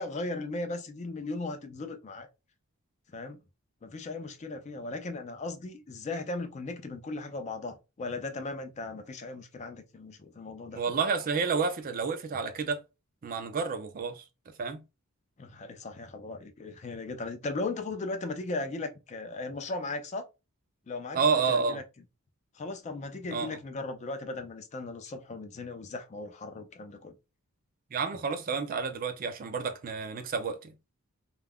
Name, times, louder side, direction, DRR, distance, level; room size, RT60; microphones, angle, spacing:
voice 1, 0.0-2.3 3.1-3.4 3.8-10.8 15.4-20.2 20.9-21.8 22.5-27.2, left 3 dB, 30° left, 0.4 m, -37 dB
voice 2, 10.7-12.8 13.2-14.2 14.6-14.8 21.1-21.8 23.3-23.6 27.9-30.7, right 5 dB, 40° right, 0.4 m, -30 dB
2.3 x 2.1 x 3.4 m
head